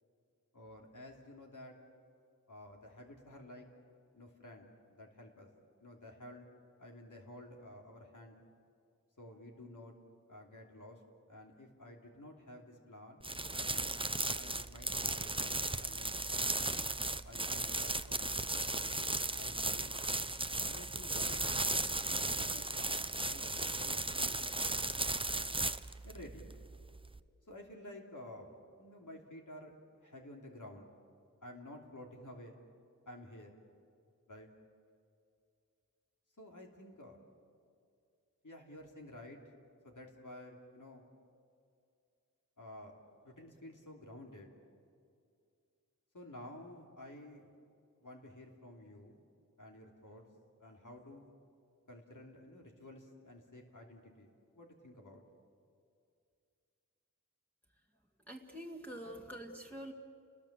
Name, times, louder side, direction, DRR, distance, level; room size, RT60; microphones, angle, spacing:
voice 1, 0.5-1.8 2.5-3.7 4.1-5.5 5.8-6.5 6.8-8.4 9.2-9.9 10.3-11.0 11.3-13.3 13.5-13.9 14.3-16.5 17.2-20.0 20.5-21.5 22.1-24.5 24.8-25.1 26.0-26.5 27.5-29.7 30.0-30.9 31.4-32.6 33.0-33.6 34.3-34.5 36.4-37.2 38.4-39.4 39.8-41.1 42.6-42.9 43.2-44.5 46.1-47.5 48.0-49.2 49.6-50.3 50.6-51.3 51.9-55.2, left 1 dB, 70° left, 0 dB, 3.1 m, -52 dB
sound 1, 13.2-27.2, right 2 dB, 15° right, 0.7 m, -36 dB
voice 2, 58.3-59.9, equal, 5° left, -1 dB, 2.0 m, -46 dB
30.0 x 20.5 x 7.5 m, 2.4 s
wide cardioid pair, 50°, 32 cm